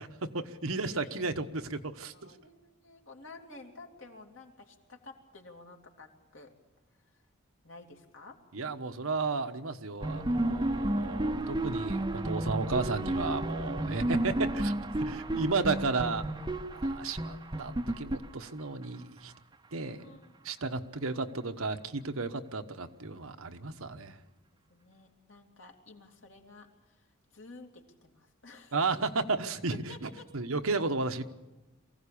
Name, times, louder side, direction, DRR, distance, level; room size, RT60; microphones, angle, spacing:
voice 1, 0.0-2.3 8.5-16.2 16.7-19.3 19.7-20.2 20.4-24.2 28.7-31.2, right 3 dB, 80° right, 7 dB, 1.2 m, -33 dB
voice 2, 0.8-1.1 2.1-6.5 7.0-7.2 7.6-8.4 11.3-11.5 15.0-15.4 16.5-16.6 20.0-20.3 20.9-21.0 24.7-28.8 29.7-30.3, left 3 dB, 65° left, 2 dB, 2.9 m, -52 dB
sound 1, 10.0-18.8, right 1 dB, 20° right, 0.7 m, -32 dB
23.5 x 16.0 x 8.6 m, 1.1 s
head